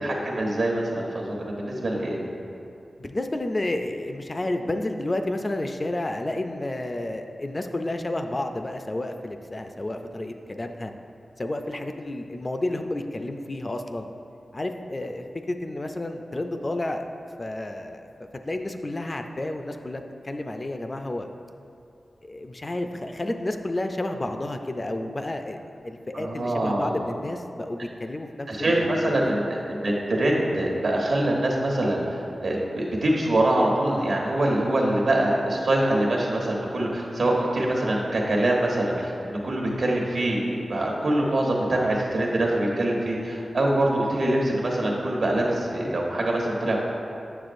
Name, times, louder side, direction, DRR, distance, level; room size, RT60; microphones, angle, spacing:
voice 1, 0.0-2.2 26.1-27.0 28.5-46.8, right 1 dB, 70° right, -2 dB, 1.1 m, -24 dB
voice 2, 3.0-10.9 11.4-14.1 14.5-17.0 17.4-18.0 18.5-21.3 22.2-25.6 25.8-29.3, left 1 dB, 30° left, 6 dB, 0.3 m, -31 dB
7.9 x 6.8 x 2.5 m, 2.6 s
wide cardioid pair, 130°, 0 cm